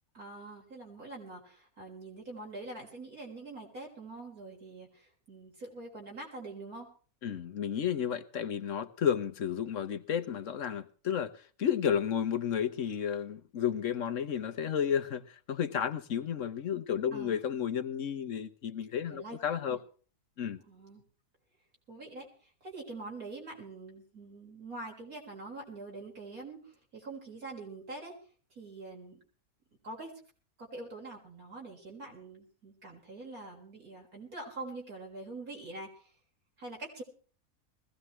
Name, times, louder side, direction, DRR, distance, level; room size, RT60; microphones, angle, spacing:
voice 1, 0.1-6.9 17.1-17.4 19.1-19.4 19.6-19.8 20.6-21.0 21.9-22.3 22.6-28.1 28.5-29.2 29.8-30.1 30.6-35.9 36.6-37.0, right 2 dB, 90° right, 4.9 m, -44 dB
voice 2, 7.2-11.3 11.6-19.8 20.4-20.6, left 8 dB, 65° left, 1.2 m, -32 dB
21.0 x 16.0 x 3.2 m
omnidirectional pair, 1.5 m